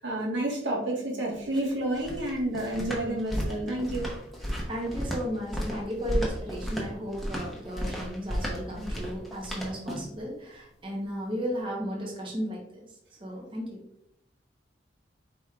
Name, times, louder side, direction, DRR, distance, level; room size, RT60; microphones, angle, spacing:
voice 1, 0.0-4.1, right 1 dB, 90° right, -3 dB, 1.5 m, -30 dB
sound 1, 1.3-10.2, equal, ahead, 0.8 m, -34 dB
voice 2, 4.4-13.8, equal, 25° right, -2 dB, 0.9 m, -35 dB
5.0 x 4.4 x 2.4 m, 0.75 s
head